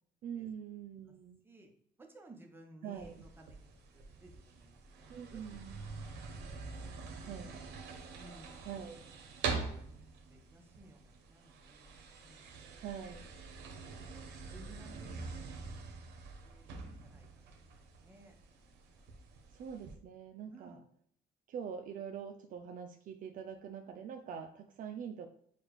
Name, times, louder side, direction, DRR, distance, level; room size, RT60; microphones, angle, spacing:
voice 1, 0.2-1.4 2.8-3.2 5.1-5.8 7.2-7.6 8.6-9.0 12.8-13.3 19.5-20.8 21.5-25.3, right 8 dB, 55° right, 6 dB, 0.4 m, -44 dB
voice 2, 2.0-6.1 7.4-7.7 8.2-8.6 9.8-10.0 10.3-12.5 14.5-18.3 20.5-20.8, right 1 dB, 15° right, 2 dB, 0.8 m, -58 dB
sound 1, 2.9-19.9, right 4 dB, 85° right, 0.8 m, -45 dB
6.7 x 2.4 x 3.1 m, 0.66 s
cardioid pair, 110°, 17 cm